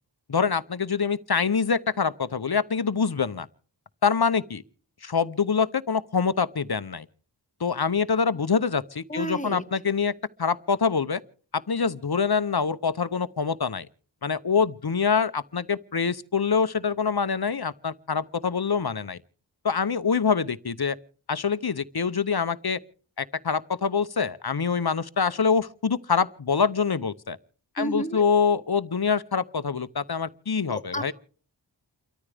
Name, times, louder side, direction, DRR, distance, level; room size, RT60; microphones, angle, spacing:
voice 1, 0.3-3.5 4.0-4.6 5.0-7.1 7.6-10.1 10.4-11.2 11.7-13.9 14.2-19.2 19.6-21.0 21.3-22.8 23.2-27.4 27.8-31.1, left 5 dB, 55° left, 0.8 m, -25 dB
voice 2, 9.1-9.6 27.8-28.2 30.7-31.1, right 1 dB, 15° left, 1.7 m, -31 dB
29.0 x 13.5 x 3.4 m
wide cardioid pair, 40°, 45 cm